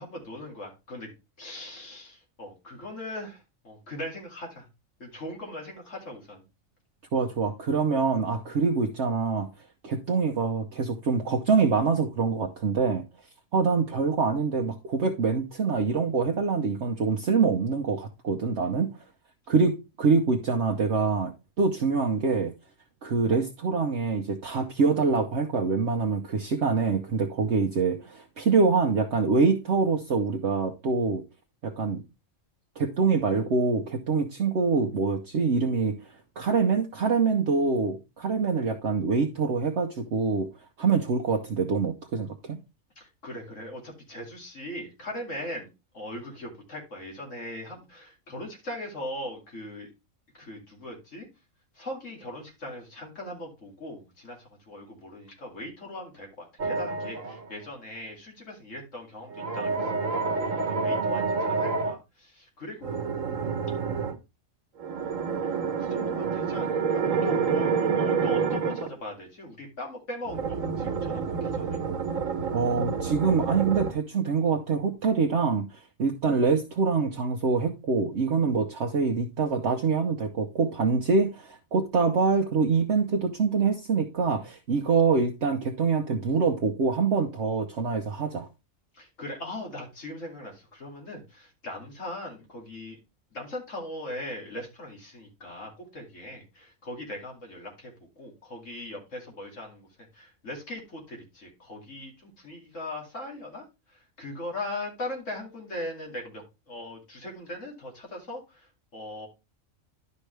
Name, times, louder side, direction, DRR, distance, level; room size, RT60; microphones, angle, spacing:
voice 1, 0.0-4.7 5.0-6.4 43.0-45.7 45.9-49.9 50.3-51.3 51.7-60.2 60.4-63.0 65.4-71.8 88.9-93.0 93.3-99.9 100.1-109.3, left 1 dB, 65° left, 3.0 m, -40 dB
voice 2, 7.1-9.5 9.8-13.0 13.5-18.9 19.5-22.5 23.0-31.2 31.6-32.0 32.8-40.5 40.8-42.6 72.5-88.5, right 4 dB, 60° right, 1.1 m, -25 dB
sound 1, 56.6-57.5 59.3-61.9 62.8-64.2 64.8-68.9 70.3-73.9, right 5 dB, 80° right, 1.6 m, -28 dB
11.5 x 5.4 x 3.3 m
omnidirectional pair, 1.4 m